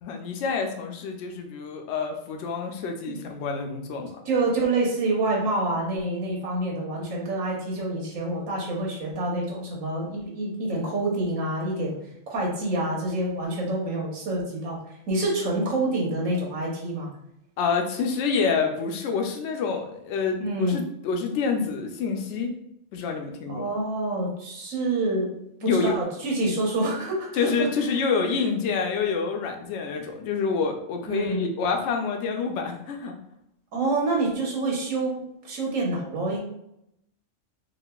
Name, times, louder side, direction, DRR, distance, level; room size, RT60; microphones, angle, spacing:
voice 1, 0.0-4.1 17.6-22.5 22.9-23.6 25.6-26.0 27.3-33.1, left 5 dB, 70° left, 3 dB, 0.8 m, -27 dB
voice 2, 4.2-11.9 12.3-14.8 15.1-17.1 20.4-20.8 23.5-25.3 25.6-27.7 31.1-31.4 33.7-36.4, right 2 dB, 90° right, -2 dB, 1.3 m, -27 dB
4.0 x 2.4 x 2.2 m, 0.79 s
omnidirectional pair, 1.3 m